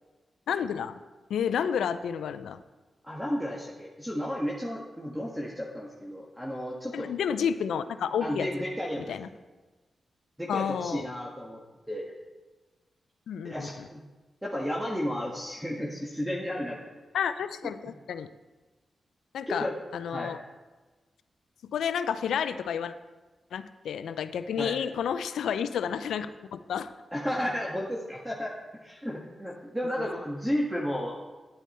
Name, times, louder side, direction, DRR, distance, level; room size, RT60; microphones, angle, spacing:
voice 1, 0.5-1.0 1.3-2.6 6.9-8.5 9.0-9.3 10.5-11.1 13.3-13.9 17.1-18.3 19.3-20.4 21.6-22.9 23.5-26.9 30.0-30.1, left 8 dB, 85° left, 12 dB, 0.4 m, -31 dB
voice 2, 3.0-7.1 8.2-9.1 10.4-11.6 11.9-12.1 13.4-14.0 14.4-16.8 19.5-19.7 20.1-20.4 24.6-24.7 27.1-28.5 28.8-31.1, equal, 5° right, -3 dB, 1.6 m, -33 dB
9.8 x 8.9 x 4.3 m, 1.2 s
supercardioid pair, 45°, 0 cm